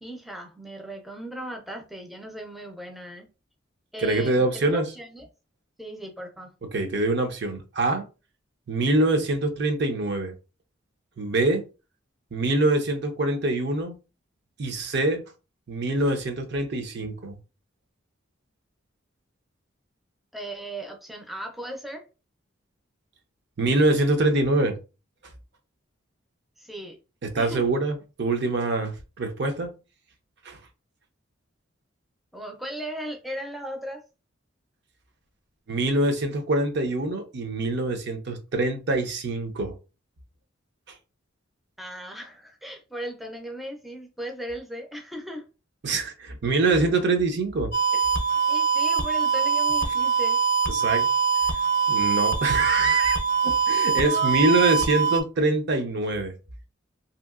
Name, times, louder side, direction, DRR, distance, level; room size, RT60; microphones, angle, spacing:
voice 1, 0.0-3.3 3.9-5.3 5.8-6.5 20.3-22.0 26.6-27.0 27.4-27.7 32.3-34.0 41.8-45.5 47.9-48.1 48.5-50.4 53.9-54.4, right 1 dB, ahead, 0.4 m, -37 dB
voice 2, 4.0-4.8 6.7-8.1 8.7-10.3 11.2-11.6 12.3-14.0 14.6-15.2 15.7-17.4 23.6-24.8 27.2-29.7 30.5-30.6 35.7-39.7 45.8-47.7 50.7-51.1 51.9-56.3, right 2 dB, 60° right, 0.6 m, -24 dB
sound 1, 47.7-55.2, right 6 dB, 55° left, 0.5 m, -23 dB
2.8 x 2.7 x 2.4 m
head